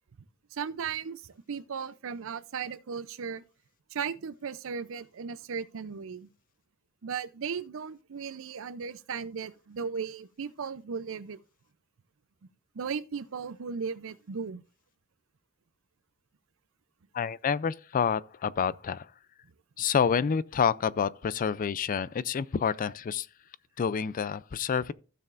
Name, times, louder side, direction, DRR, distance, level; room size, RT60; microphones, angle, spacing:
voice 1, 0.5-3.4 3.9-6.3 7.0-11.4 12.7-14.6, right 6 dB, 65° right, 0.5 m, -36 dB
voice 2, 17.1-19.1 19.8-23.3 23.8-24.9, left 6 dB, 40° left, 0.4 m, -28 dB
15.5 x 6.8 x 2.5 m
head